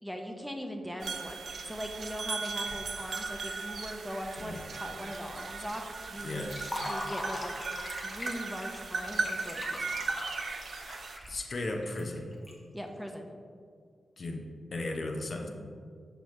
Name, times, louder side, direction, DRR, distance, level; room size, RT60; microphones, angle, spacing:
voice 1, 0.0-6.5 6.9-7.5 8.0-10.0 12.7-13.3, equal, ahead, 2 dB, 0.6 m, -40 dB
sound 1, 1.0-11.2, right 4 dB, 70° right, 0.4 m, -37 dB
Stream, 2.6-11.3, right 1 dB, 25° right, 1.0 m, -53 dB
voice 2, 6.2-6.5 11.3-12.3 14.2-14.4 14.7-15.5, left 2 dB, 55° left, 2 dB, 0.7 m, -35 dB
Liquid, 6.4-12.5, left 1 dB, 35° left, 1.0 m, -40 dB
6.1 x 5.0 x 3.2 m, 2.1 s
cardioid pair, 75°, 0 cm